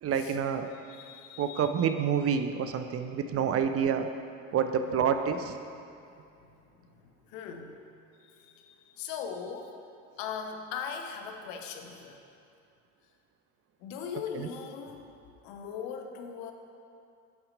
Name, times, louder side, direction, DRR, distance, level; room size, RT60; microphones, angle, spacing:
voice 1, 0.0-0.7 1.4-4.1 4.5-5.6 14.3-14.5, right 7 dB, 35° right, 8 dB, 0.5 m, -28 dB
voice 2, 0.7-1.7 3.1-3.2 4.9-5.0 6.0-6.1 6.4-6.5 6.9-7.8 8.2-9.8 10.2-12.2 13.8-15.1 15.4-16.5, left 7 dB, 65° left, 4 dB, 0.9 m, -40 dB
8.0 x 5.8 x 5.1 m, 2.5 s
hypercardioid pair, 60°, 39 cm